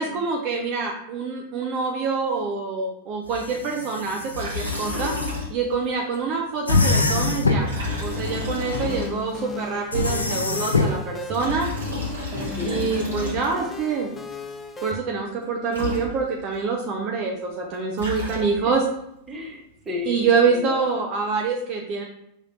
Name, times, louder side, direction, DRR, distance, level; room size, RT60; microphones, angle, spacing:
voice 1, 0.0-5.1 5.5-7.7 8.0-11.7 12.6-14.1 14.8-18.8 20.1-22.0, right 5 dB, 40° right, 1 dB, 0.6 m, -25 dB
sound 1, 3.3-5.3 6.7-7.8 9.9-11.0, left 3 dB, 80° left, 0.5 m, -24 dB
Liquid, 4.3-5.8 6.1-6.2 7.6-9.5 11.1-13.8 15.4-15.5 15.7-16.5 17.7-18.8, left 3 dB, 75° right, 1.7 m, -31 dB
voice 2, 4.7-5.1 8.0-8.5 8.8-8.9 12.3-12.9 18.3-18.6 19.3-20.9, left 2 dB, 20° right, 0 dB, 1.0 m, -35 dB
sound 2, 7.6-15.0, left 5 dB, 15° left, 0.4 m, -36 dB
5.5 x 3.2 x 2.5 m, 0.76 s
figure-of-eight pair, 90°, 0 cm